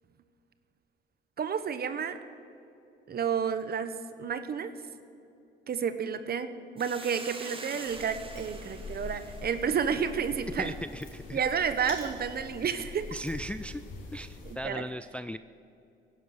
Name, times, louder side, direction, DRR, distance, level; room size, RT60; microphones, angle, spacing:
voice 1, 1.4-2.2 3.1-4.7 5.7-10.7 11.3-13.1 14.5-14.8, right 7 dB, 50° right, 11 dB, 1.0 m, -31 dB
Hiss, 6.8-11.3, right 3 dB, 25° right, 1.8 m, -46 dB
sound 1, 7.9-14.6, left 3 dB, 80° left, 3.6 m, -44 dB
voice 2, 10.6-11.4 13.1-13.8 14.1-15.4, equal, 5° left, 12 dB, 0.3 m, -37 dB
17.0 x 11.0 x 6.5 m, 2.7 s
cardioid pair, 90°, 20 cm